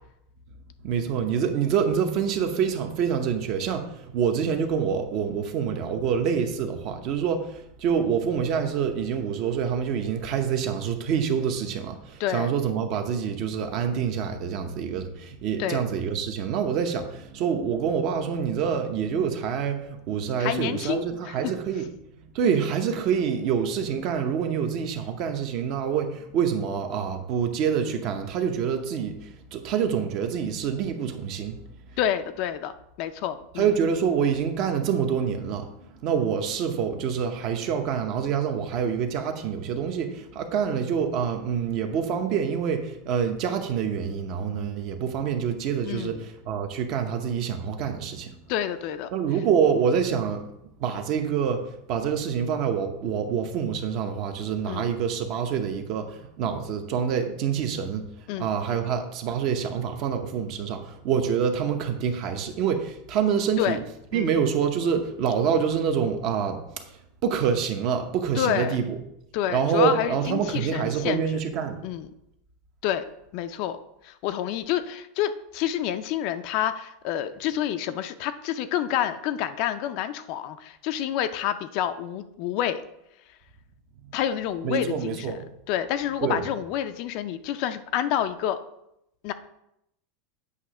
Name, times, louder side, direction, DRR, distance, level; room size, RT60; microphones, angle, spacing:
voice 1, 0.8-21.8 22.2-31.6 33.6-35.7 36.0-48.3 49.1-50.5 50.8-51.6 51.9-58.0 58.4-63.8 64.1-66.6 67.2-69.0 69.5-71.8 84.0-84.1 84.6-85.4 86.2-86.4, right 7 dB, 45° right, 6 dB, 0.9 m, -26 dB
voice 2, 20.4-21.5 32.0-32.7 33.0-33.7 45.8-46.2 48.5-49.1 54.7-54.9 58.3-58.5 63.6-63.8 64.1-64.3 68.3-68.8 69.3-71.2 71.8-72.1 72.8-73.0 73.3-73.8 74.0-82.8 84.1-85.3 85.7-88.6 89.2-89.3, left 11 dB, 50° left, 10 dB, 0.4 m, -28 dB
8.2 x 2.8 x 6.1 m, 0.80 s
supercardioid pair, 150°, 0 cm